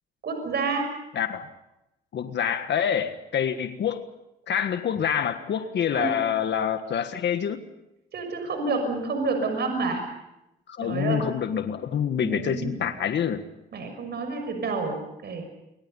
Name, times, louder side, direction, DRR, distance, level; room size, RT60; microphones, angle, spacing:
voice 1, 0.2-0.9 5.9-6.2 8.1-10.0 10.8-11.2 12.2-12.8 13.7-15.5, right 3 dB, 55° right, 5 dB, 6.3 m, -29 dB
voice 2, 1.1-1.5 2.1-4.1 4.5-7.6 10.7-13.4, left 8 dB, 60° left, 8 dB, 1.6 m, -26 dB
28.5 x 24.5 x 5.6 m, 0.89 s
cardioid pair, 90°, 20 cm